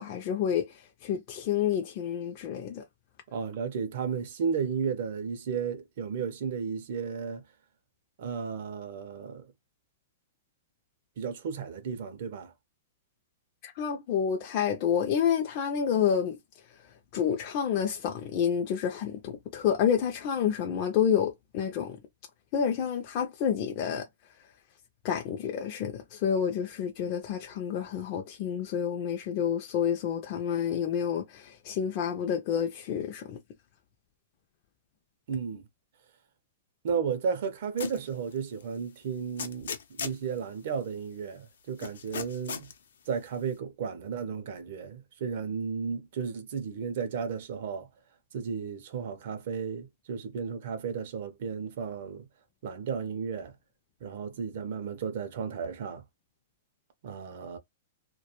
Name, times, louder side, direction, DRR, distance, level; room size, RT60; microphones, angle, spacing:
voice 1, 0.0-2.8 13.6-16.4 17.1-22.0 22.5-24.1 25.0-33.4, left 8 dB, 30° left, 0.3 m, -29 dB
voice 2, 3.3-7.4 8.2-9.5 11.2-12.5 35.3-35.6 36.8-42.7 43.1-47.9 48.3-52.3 52.6-53.5 54.0-56.0 57.0-57.6, right 6 dB, 50° right, 0.5 m, -34 dB
sound 1, 37.8-38.1 38.6-38.7 39.4-40.2 41.8-42.7, left 6 dB, 85° left, 0.5 m, -36 dB
2.2 x 2.1 x 2.8 m
hypercardioid pair, 170°, 0 cm